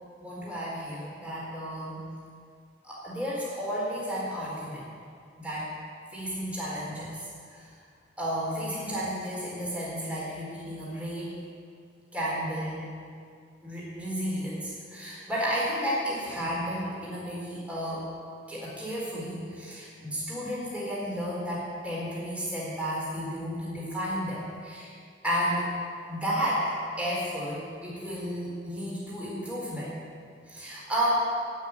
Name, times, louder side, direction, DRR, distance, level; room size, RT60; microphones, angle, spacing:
voice 1, 0.2-2.1 2.8-4.9 5.4-5.7 6.1-7.7 8.2-11.3 12.1-12.9 13.6-18.0 18.5-24.9 25.2-25.7 26.1-29.9 30.5-31.2, equal, 5° right, -7 dB, 4.2 m, -32 dB
16.5 x 6.4 x 9.6 m, 2.2 s
head